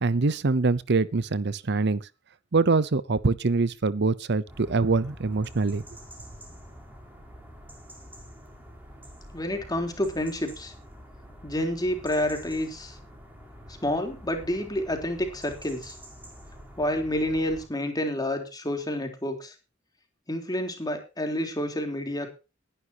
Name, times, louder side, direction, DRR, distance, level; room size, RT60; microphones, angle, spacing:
voice 1, 0.0-2.1 2.5-5.8, right 3 dB, 60° right, 0.7 m, -24 dB
sound 1, 4.5-17.7, equal, 10° right, 5.4 m, -47 dB
voice 2, 9.3-10.7 11.4-13.0 13.8-16.0 16.8-19.5 20.3-22.3, left 1 dB, 20° left, 3.7 m, -29 dB
19.5 x 11.0 x 2.9 m
head